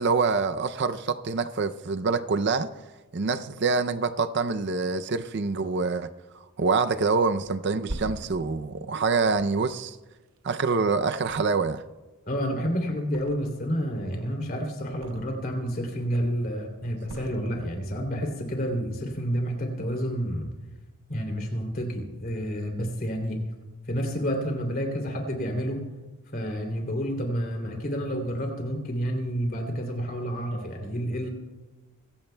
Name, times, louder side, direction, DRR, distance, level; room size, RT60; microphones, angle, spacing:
voice 1, 0.0-2.7 3.1-6.1 6.6-10.0 10.4-11.8, right 4 dB, 50° right, 0.5 m, -26 dB
Thump thud, 7.5-10.7 11.2-12.0 12.2-13.7 14.0-15.6 15.9-16.5 17.0-18.0 18.4-18.6, right 1 dB, 65° right, 0.9 m, -43 dB
voice 2, 12.3-20.5 21.1-23.4 23.9-25.8 26.3-31.3, equal, 40° left, 2.9 m, -29 dB
25.5 x 16.0 x 2.2 m
head